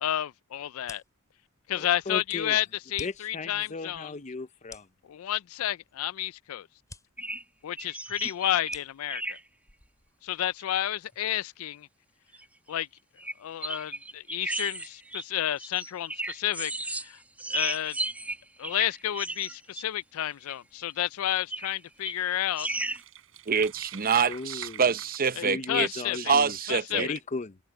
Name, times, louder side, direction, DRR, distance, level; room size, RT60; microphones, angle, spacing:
voice 1, 0.0-1.0 1.7-2.7 2.9-4.1 5.1-6.7 7.6-9.4 10.2-11.9 12.7-12.9 13.4-17.2 17.5-18.0 18.6-22.7 25.4-26.3 26.7-27.0, left 12 dB, 70° left, 0.4 m, -31 dB
sound 1, 0.8-10.6, left 3 dB, 15° left, 3.4 m, -53 dB
voice 2, 1.8-2.6 3.0-4.9 24.3-24.9 25.4-26.6 26.9-27.6, left 3 dB, 35° left, 0.7 m, -36 dB
sound 2, 7.2-7.4 7.8-8.8 9.1-9.4 10.6-10.7 11.1-11.4 12.3-12.4 13.2-13.3 13.6-17.1 17.4-19.8 20.5-20.6 21.5-21.8 22.0-23.0, right 2 dB, 5° right, 1.9 m, -34 dB
sound 3, 21.2-21.4 22.0-22.1 22.4-25.2, right 10 dB, 65° right, 6.1 m, -45 dB
voice 3, 23.5-27.1, right 6 dB, 40° right, 0.8 m, -26 dB
head